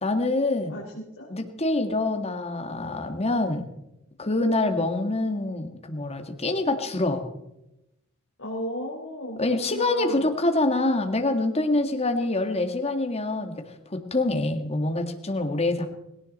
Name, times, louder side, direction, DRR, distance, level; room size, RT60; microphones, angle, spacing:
voice 1, 0.0-0.8 1.3-3.7 4.2-7.2 9.4-13.6 13.9-15.9, left 2 dB, 30° left, 5 dB, 1.8 m, -25 dB
voice 2, 0.7-1.3 8.4-10.3, equal, 65° left, -5 dB, 3.9 m, -35 dB
18.0 x 17.5 x 4.2 m, 0.89 s
head